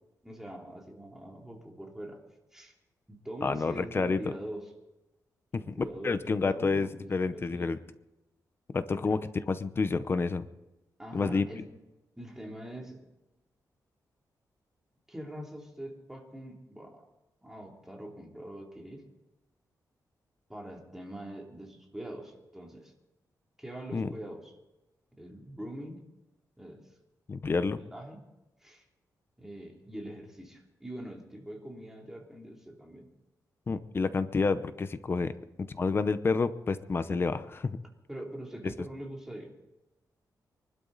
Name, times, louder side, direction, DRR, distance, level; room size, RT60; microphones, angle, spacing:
voice 1, 0.2-2.2 2.5-2.7 3.1-4.7 5.5-7.7 8.9-9.2 11.0-11.7 12.2-13.1 15.1-17.1 17.4-19.0 20.5-22.9 23.6-24.5 25.2-26.1 26.6-26.9 27.6-28.2 28.6-28.8 29.4-33.1 38.1-39.5, right 1 dB, 5° right, 0 dB, 2.9 m, -43 dB
voice 2, 3.4-4.2 5.5-5.6 6.0-7.8 8.7-9.2 9.5-10.4 11.1-11.4 23.9-24.1 27.3-27.8 33.7-35.3 35.7-37.8, left 4 dB, 35° left, 12 dB, 0.8 m, -29 dB
24.5 x 12.0 x 4.0 m, 1.0 s
wide cardioid pair, 135°, 7 cm